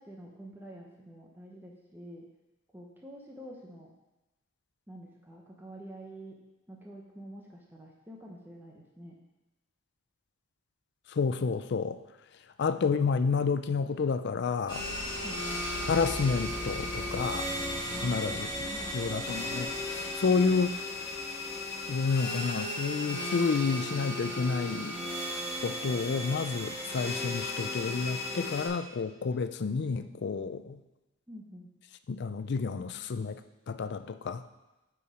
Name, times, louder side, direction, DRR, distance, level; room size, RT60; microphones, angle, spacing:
voice 1, 0.0-2.3 2.7-3.9 4.9-6.4 6.7-9.2 15.2-15.4 17.9-19.0 31.3-31.7, right 1 dB, 10° right, -1 dB, 0.9 m, -47 dB
voice 2, 11.1-12.0 12.6-14.9 15.9-17.5 18.0-18.5 18.9-20.8 21.9-25.0 25.6-30.8 32.1-33.4 33.7-34.4, left 5 dB, 55° left, 11 dB, 0.4 m, -30 dB
sound 1, 14.7-28.7, left 1 dB, 25° left, 2.2 m, -35 dB
8.3 x 4.7 x 4.9 m, 1.0 s
head